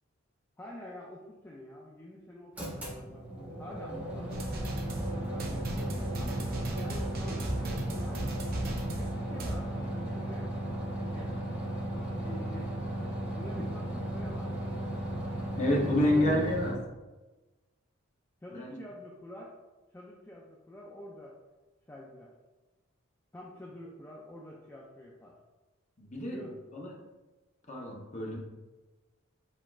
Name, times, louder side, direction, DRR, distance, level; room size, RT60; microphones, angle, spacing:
voice 1, 0.6-4.3 5.1-8.3 8.9-10.5 10.8-11.4 11.9-12.9 13.3-15.1 15.8-16.7 18.4-19.5 19.9-21.3 21.9-22.3 23.3-25.4 26.3-26.6, left 1 dB, 10° left, -3 dB, 0.3 m, -47 dB
sound 1, 2.5-16.7, right 1 dB, 5° right, 1.3 m, -36 dB
sound 2, 4.3-9.6, right 1 dB, 40° right, 0.6 m, -36 dB
voice 2, 15.6-16.7 18.5-18.8 26.0-26.4 26.7-26.9 27.7-28.4, left 1 dB, 30° left, -1 dB, 0.7 m, -28 dB
4.3 x 4.2 x 2.3 m, 1.2 s
head